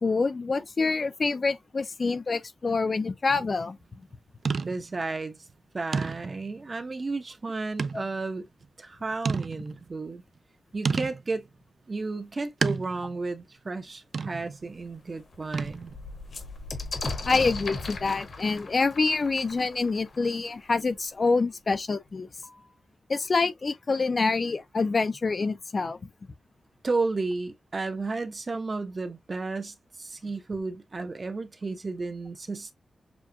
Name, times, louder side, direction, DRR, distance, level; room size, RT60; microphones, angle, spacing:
voice 1, 0.0-3.8 7.9-8.0 17.2-22.3 23.1-26.0, left 4 dB, 40° left, 0.6 m, -26 dB
sound 1, 3.3-3.6 4.4-5.0 5.5-5.6 5.9-6.5 7.8-8.1 8.6-8.7 9.2-9.9 10.8-11.3 12.6-13.2 14.1-14.6 15.5-16.0, right 5 dB, 55° right, 0.4 m, -31 dB
voice 2, 4.6-5.4 5.7-8.4 8.8-10.2 10.7-11.5 11.9-15.9 26.8-32.7, right 3 dB, 35° right, 0.8 m, -33 dB
sound 2, 14.3-14.4 14.8-14.9 15.2-20.8 21.7-21.8 22.1-22.7, left 3 dB, 60° left, 1.4 m, -37 dB
7.0 x 2.4 x 2.8 m
wide cardioid pair, 150°, 0 cm